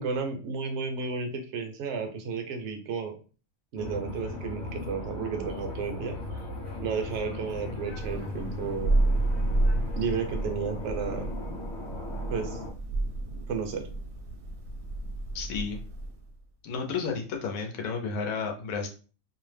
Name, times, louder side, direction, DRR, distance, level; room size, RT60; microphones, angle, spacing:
voice 1, 0.0-3.2 3.7-6.2 6.8-8.9 9.9-11.3 12.3-12.6 13.5-13.9, right 5 dB, 65° right, 5 dB, 0.8 m, -32 dB
sound 1, 3.8-12.7, left 2 dB, 55° left, 1.0 m, -38 dB
Thunder, 7.8-16.3, right 2 dB, 85° right, 1.0 m, -30 dB
voice 2, 15.3-15.8 16.6-18.9, left 5 dB, 85° left, 3 dB, 1.0 m, -32 dB
2.6 x 2.0 x 3.2 m, 0.37 s
omnidirectional pair, 1.4 m